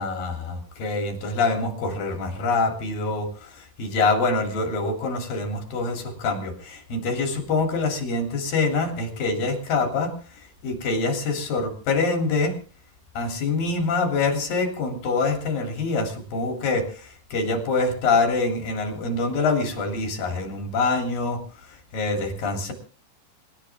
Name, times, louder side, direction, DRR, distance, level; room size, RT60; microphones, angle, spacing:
voice 1, 0.0-12.6 13.1-21.4 21.9-22.7, left 3 dB, 80° left, 3 dB, 5.0 m, -25 dB
26.5 x 12.5 x 3.6 m, 0.38 s
omnidirectional pair, 3.9 m